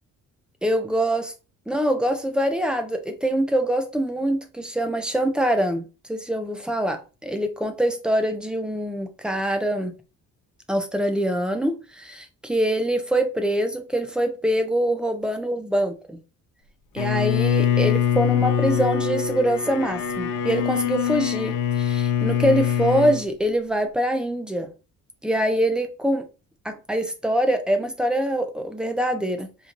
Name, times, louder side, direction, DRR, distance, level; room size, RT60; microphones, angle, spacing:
voice 1, 0.6-1.3 1.7-5.8 6.1-9.9 10.7-16.2 16.9-24.7 25.2-26.3 26.6-29.5, right 1 dB, 5° right, 0.4 m, -24 dB
Bowed string instrument, 17.0-23.2, left 9 dB, 80° left, 0.6 m, -23 dB
4.4 x 2.5 x 2.5 m
cardioid pair, 160°, 32 cm